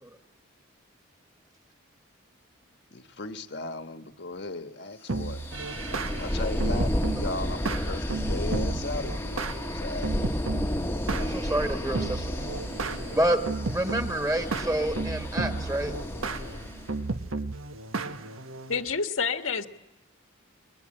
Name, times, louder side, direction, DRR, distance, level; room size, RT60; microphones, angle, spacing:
voice 1, 2.9-5.4 6.2-10.2, left 2 dB, 55° left, 8 dB, 1.4 m, -37 dB
sound 1, 5.1-18.8, right 3 dB, 80° right, 1.4 m, -34 dB
sound 2, 5.2-16.9, equal, 10° left, 1.2 m, -32 dB
voice 2, 11.2-12.5 13.1-13.4 13.7-15.9, right 1 dB, 15° right, 6 dB, 2.0 m, -28 dB
voice 3, 18.7-19.7, left 5 dB, 75° left, 7 dB, 1.6 m, -28 dB
30.0 x 22.5 x 8.9 m, 0.95 s
head